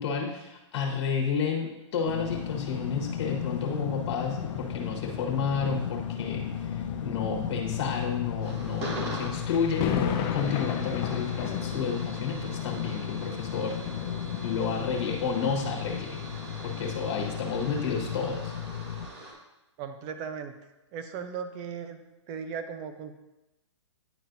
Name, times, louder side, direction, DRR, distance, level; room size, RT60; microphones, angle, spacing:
voice 1, 0.0-13.8 14.4-16.2 16.6-18.5, left 6 dB, 55° left, -1 dB, 1.5 m, -31 dB
sound 1, 2.1-19.1, left 8 dB, 75° left, 0.8 m, -35 dB
sound 2, 2.2-15.0 15.7-15.9, left 9 dB, 30° left, 0.6 m, -38 dB
sound 3, 8.4-19.3, right 1 dB, 60° right, 1.9 m, -43 dB
voice 2, 19.8-20.6 20.9-22.0 22.3-23.2, right 6 dB, 30° right, 8 dB, 0.6 m, -37 dB
9.8 x 4.3 x 2.6 m, 0.96 s
hypercardioid pair, 140°, 16 cm